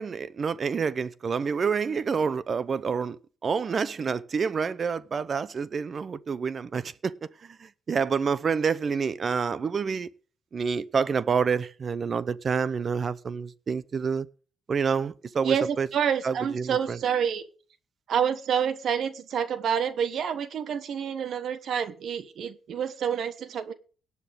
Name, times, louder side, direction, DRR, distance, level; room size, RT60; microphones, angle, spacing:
voice 1, 0.0-10.1 10.5-14.3 14.7-15.9 16.2-17.0, right 5 dB, 45° right, 0.7 m, -28 dB
voice 2, 15.4-17.5 18.1-23.7, right 8 dB, 65° right, 1.3 m, -28 dB
18.0 x 8.4 x 3.5 m
cardioid pair, 90°, 0 cm